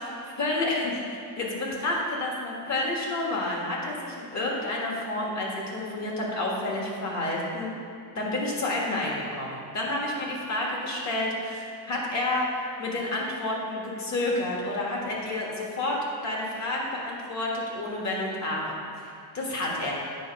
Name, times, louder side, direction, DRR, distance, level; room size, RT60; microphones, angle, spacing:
voice 1, 0.4-7.7 8.1-12.5 12.8-16.0 16.2-18.7 19.3-19.9, left 2 dB, 40° left, -2 dB, 1.7 m, -29 dB
8.5 x 4.3 x 5.8 m, 2.5 s
cardioid pair, 165°, 41 cm